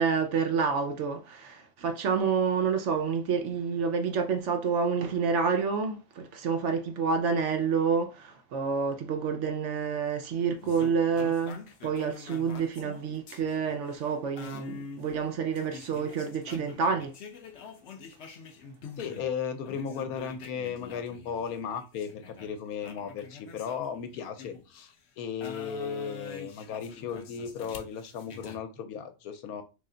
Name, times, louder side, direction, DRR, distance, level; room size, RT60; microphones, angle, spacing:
voice 1, 0.0-17.1, right 5 dB, 65° right, 0.8 m, -28 dB
sound 1, 10.6-19.3 19.6-24.9 25.4-28.6, left 5 dB, 60° left, 0.8 m, -46 dB
voice 2, 19.0-29.6, left 7 dB, 75° left, 1.1 m, -36 dB
3.2 x 2.7 x 3.7 m
omnidirectional pair, 1.6 m